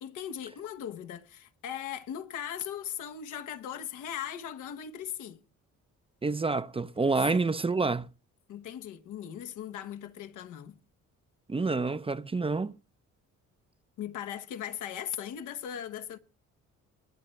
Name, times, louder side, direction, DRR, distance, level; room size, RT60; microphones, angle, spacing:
voice 1, 0.0-5.4 7.3-7.4 8.5-10.8 14.0-16.2, left 9 dB, 85° left, 1.3 m, -38 dB
voice 2, 6.2-8.1 11.5-12.7, right 3 dB, 20° right, 0.6 m, -28 dB
21.0 x 10.0 x 3.2 m
cardioid pair, 90°, 30 cm